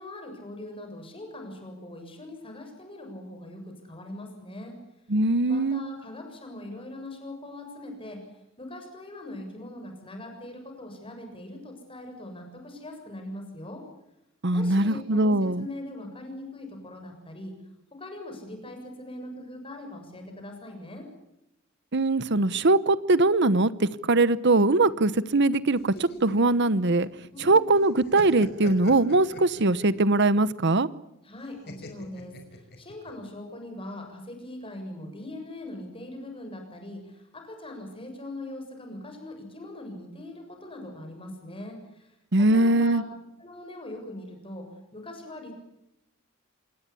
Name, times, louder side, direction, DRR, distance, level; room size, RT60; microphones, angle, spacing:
voice 1, 0.0-4.8 5.5-8.2 8.6-13.8 14.5-17.5 17.9-21.1 27.3-27.8 31.2-43.1 43.4-44.7 44.9-45.5, left 1 dB, 25° left, 4 dB, 7.2 m, -41 dB
voice 2, 5.1-5.8 14.4-15.7 21.9-27.1 27.4-30.9 42.3-43.0, right 2 dB, 55° right, 17 dB, 1.0 m, -22 dB
sound 1, 25.8-27.5 27.8-30.0 31.7-33.1, left 1 dB, 50° left, 5.2 m, -42 dB
27.0 x 20.5 x 8.5 m, 0.86 s
head